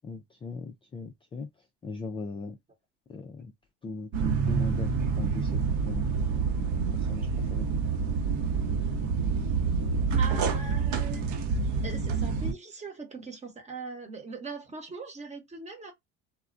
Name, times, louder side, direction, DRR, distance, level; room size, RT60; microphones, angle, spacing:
voice 1, 0.0-1.5 1.8-2.6 3.1-3.5 3.8-4.9 5.2-7.7, left 3 dB, 15° left, 0.3 m, -39 dB
sound 1, 4.1-12.5, right 5 dB, 55° right, 0.8 m, -27 dB
voice 2, 10.2-11.3 11.8-15.9, right 4 dB, 20° right, 0.9 m, -40 dB
2.3 x 2.1 x 2.5 m
supercardioid pair, 95°, 35 cm